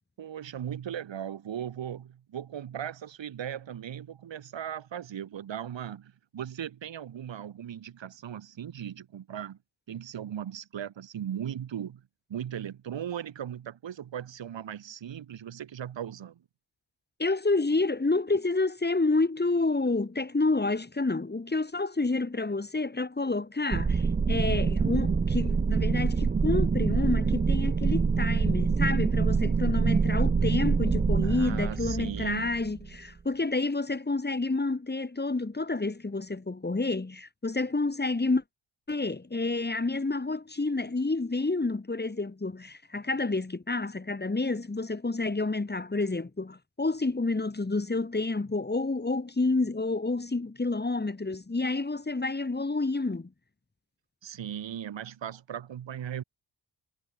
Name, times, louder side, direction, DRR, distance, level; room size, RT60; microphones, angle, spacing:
voice 1, 0.2-9.6 9.9-12.0 12.3-16.4 31.2-32.5 54.2-56.2, right 9 dB, 80° right, 5.2 m, -38 dB
voice 2, 17.2-38.4 38.9-53.3, left 3 dB, 20° left, 6.4 m, -29 dB
sound 1, 23.7-33.0, right 5 dB, 20° right, 0.6 m, -25 dB
wide cardioid pair, 110°, 43 cm